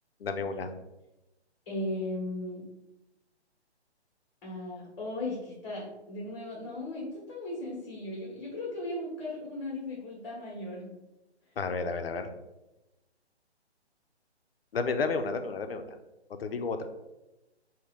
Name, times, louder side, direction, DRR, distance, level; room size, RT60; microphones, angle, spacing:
voice 1, 0.2-0.7 11.6-12.3 14.7-15.9 16.3-16.9, left 4 dB, 60° left, 7 dB, 0.6 m, -31 dB
voice 2, 1.7-2.6 4.4-10.9, left 1 dB, 15° left, -7 dB, 1.0 m, -37 dB
5.0 x 2.7 x 3.4 m, 0.96 s
hypercardioid pair, 170°, 34 cm